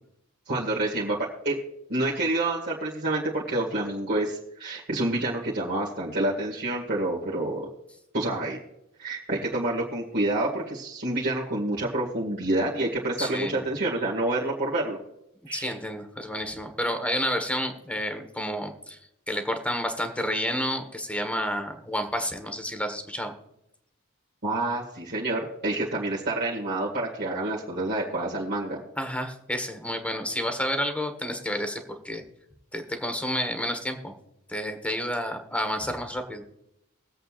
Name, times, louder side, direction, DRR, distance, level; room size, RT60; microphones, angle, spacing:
voice 1, 0.5-1.2 1.4-1.6 1.9-7.7 8.1-8.6 9.0-15.0 15.5-15.7 24.4-28.8, right 2 dB, 50° right, -5 dB, 2.1 m, -28 dB
voice 2, 13.2-13.6 15.5-19.0 19.3-23.3 29.0-32.2 32.7-34.1 34.5-36.4, equal, 5° left, 6 dB, 1.4 m, -30 dB
23.5 x 8.0 x 2.5 m, 0.82 s
head